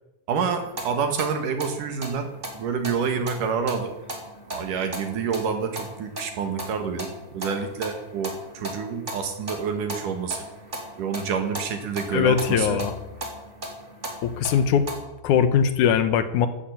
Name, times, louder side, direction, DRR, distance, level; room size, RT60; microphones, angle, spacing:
voice 1, 0.3-2.3 2.6-3.9 4.5-10.5 11.0-12.8, right 6 dB, 85° right, 6 dB, 3.6 m, -28 dB
sound 1, 0.6-14.9, right 1 dB, 20° right, 3.3 m, -38 dB
voice 2, 12.1-13.0 14.2-14.9 15.2-16.5, left 8 dB, 75° left, 11 dB, 2.6 m, -21 dB
13.5 x 11.5 x 8.8 m, 0.96 s
omnidirectional pair, 3.6 m